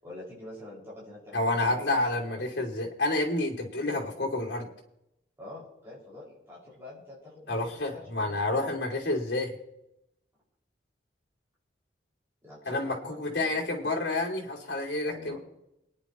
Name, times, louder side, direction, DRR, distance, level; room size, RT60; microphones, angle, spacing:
voice 1, 0.0-1.8 2.3-2.7 5.4-7.5 8.0-8.4 12.4-13.5 13.8-13.9 15.0-15.4, left 2 dB, 15° right, -9 dB, 6.1 m, -46 dB
voice 2, 1.3-4.7 7.5-9.6 12.6-15.4, left 2 dB, 70° left, -1 dB, 2.9 m, -29 dB
28.0 x 10.0 x 3.1 m, 0.87 s
head